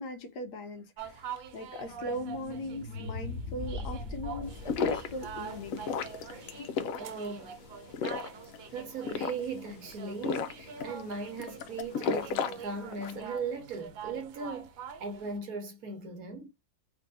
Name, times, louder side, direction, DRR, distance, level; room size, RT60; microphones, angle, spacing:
voice 1, 0.0-6.1 6.6-6.7, left 2 dB, 70° left, 1.2 m, -39 dB
sound 1, 1.0-15.4, right 7 dB, 85° right, 1.4 m, -45 dB
sound 2, 1.8-6.9, left 2 dB, 5° left, 0.6 m, -42 dB
sound 3, 4.5-13.3, left 6 dB, 85° left, 0.7 m, -35 dB
voice 2, 7.0-7.5 8.7-16.5, right 4 dB, 60° right, 1.2 m, -38 dB
3.7 x 2.7 x 2.6 m
omnidirectional pair, 2.0 m